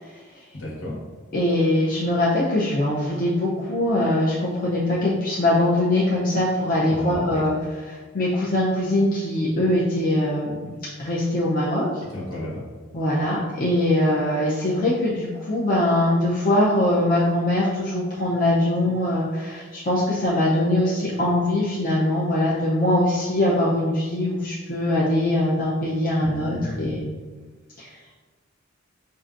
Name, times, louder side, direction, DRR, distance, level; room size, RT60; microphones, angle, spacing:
voice 1, 0.5-0.9 6.9-7.4 12.1-12.6 26.2-26.9, left 1 dB, 75° left, -6 dB, 1.4 m, -33 dB
voice 2, 1.3-7.6 7.9-10.6 11.0-11.9 12.9-27.1 27.8-27.9, left 1 dB, 40° left, -7 dB, 0.6 m, -22 dB
5.5 x 2.5 x 2.5 m, 1.4 s
head